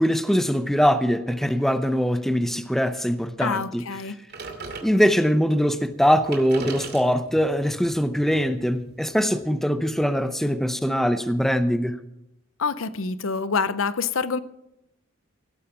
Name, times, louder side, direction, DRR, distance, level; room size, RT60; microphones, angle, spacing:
voice 1, 0.0-3.8 4.8-12.0, equal, ahead, 0.7 m, -22 dB
voice 2, 3.4-4.2 12.6-14.4, left 5 dB, 75° left, 0.7 m, -26 dB
sound 1, 4.3-5.4 5.9-6.0 6.2-9.3, right 4 dB, 50° right, 2.4 m, -39 dB
17.5 x 8.7 x 6.0 m
head